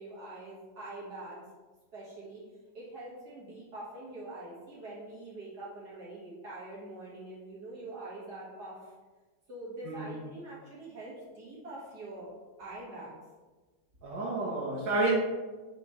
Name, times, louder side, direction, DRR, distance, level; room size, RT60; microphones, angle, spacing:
voice 1, 0.0-1.5 1.9-2.4 2.7-8.9 9.5-12.3 12.6-13.2, right 2 dB, 60° right, -6 dB, 2.3 m, -44 dB
voice 2, 9.8-10.2 14.0-15.1, right 2 dB, 80° right, -7 dB, 1.8 m, -30 dB
6.0 x 3.6 x 4.3 m, 1.3 s
omnidirectional pair, 2.0 m